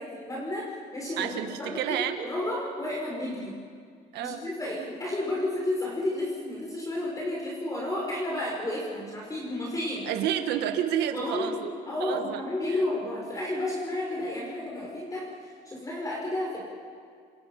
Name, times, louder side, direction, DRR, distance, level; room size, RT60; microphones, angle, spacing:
voice 1, 0.0-3.6 4.2-10.1 11.1-16.6, left 1 dB, 20° left, -3 dB, 6.0 m, -32 dB
voice 2, 1.2-2.3 4.1-4.4 10.0-11.7 12.0-12.4, right 10 dB, 85° right, 6 dB, 1.5 m, -30 dB
29.0 x 26.0 x 5.9 m, 2.2 s
cardioid pair, 110°, 17 cm